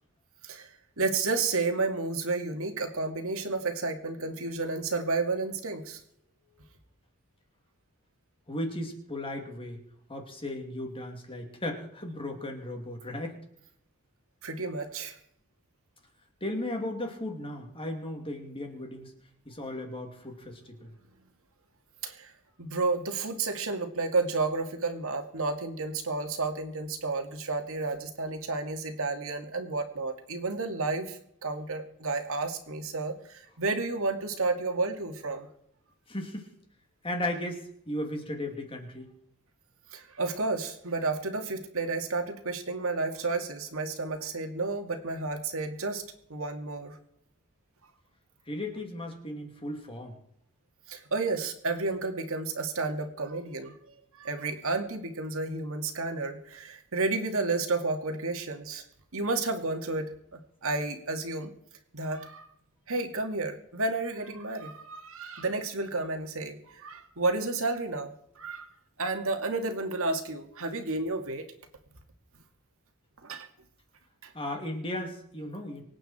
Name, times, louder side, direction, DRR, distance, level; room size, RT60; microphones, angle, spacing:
voice 1, 1.0-6.0 14.4-15.2 22.0-22.3 22.6-35.5 39.9-46.0 46.3-47.0 50.9-58.8 59.1-61.5 61.9-62.5 62.9-68.6 69.0-71.5 73.2-73.5 74.2-74.3, right 3 dB, 65° right, 5 dB, 2.3 m, -31 dB
voice 2, 8.5-9.8 10.1-13.4 16.4-19.1 19.4-20.9 36.1-36.5 37.0-39.1 48.5-50.2 74.3-75.8, left 1 dB, 25° left, 3 dB, 2.9 m, -36 dB
25.0 x 9.0 x 4.4 m, 0.72 s
head